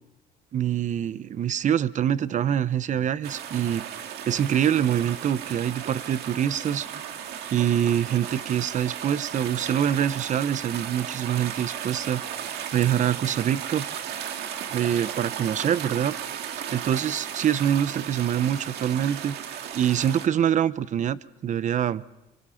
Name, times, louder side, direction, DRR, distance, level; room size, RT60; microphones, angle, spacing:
voice 1, 0.5-3.8 4.2-7.0 7.5-12.2 12.5-13.8 14.7-16.1 16.7-19.3 19.7-22.0, right 9 dB, 45° right, 16 dB, 0.8 m, -25 dB
sound 1, 3.2-20.3, right 9 dB, 75° right, 1.9 m, -35 dB
26.5 x 24.5 x 5.8 m, 0.95 s
cardioid pair, 110°, 17 cm